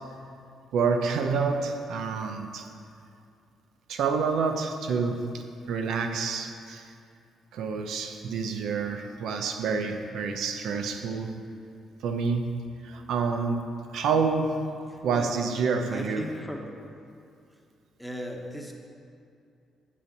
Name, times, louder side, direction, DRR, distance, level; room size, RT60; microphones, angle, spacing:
voice 1, 0.7-2.7 3.9-6.9 7.5-11.4 12.0-12.5 12.8-13.6 13.9-14.6 15.0-16.2, right 5 dB, 80° right, 5 dB, 0.7 m, -28 dB
voice 2, 14.9-15.3 15.9-16.7 18.0-18.7, equal, ahead, 1 dB, 1.2 m, -37 dB
8.6 x 6.8 x 5.3 m, 2.4 s
cardioid pair, 90°, 0 cm